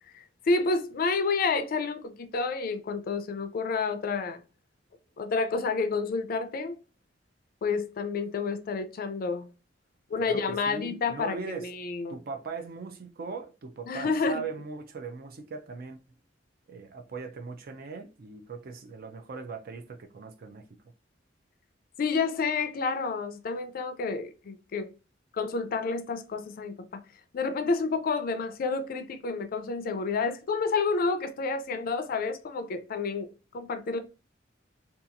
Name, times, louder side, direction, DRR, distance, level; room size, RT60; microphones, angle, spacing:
voice 1, 0.1-4.4 5.2-6.8 7.6-9.5 10.1-12.2 13.9-14.4 22.0-24.9 25.3-27.0 27.3-33.3 33.5-34.0, left 4 dB, 50° left, 0.4 m, -29 dB
voice 2, 10.2-11.7 12.1-16.0 16.7-20.6, right 4 dB, 55° right, 0.4 m, -39 dB
2.8 x 2.3 x 2.5 m
head